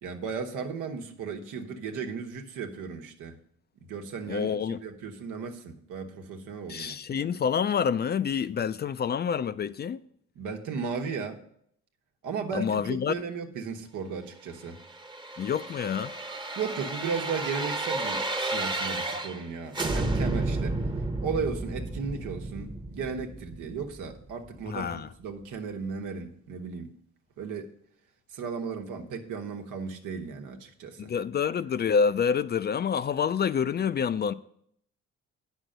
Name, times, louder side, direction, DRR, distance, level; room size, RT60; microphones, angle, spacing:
voice 1, 0.0-3.4 3.9-7.3 10.4-11.4 12.2-14.8 16.5-20.8 21.2-26.9 27.4-27.7 28.3-31.1, right 5 dB, 85° right, 1.2 m, -35 dB
voice 2, 4.3-4.8 6.7-10.0 12.5-13.1 15.4-16.1 24.7-25.1 31.0-34.3, left 7 dB, 35° left, 0.4 m, -27 dB
sound 1, 14.7-19.5 19.7-24.6 25.0-25.1, right 2 dB, 15° right, 0.9 m, -32 dB
8.9 x 6.3 x 6.6 m
cardioid pair, 90°, 30 cm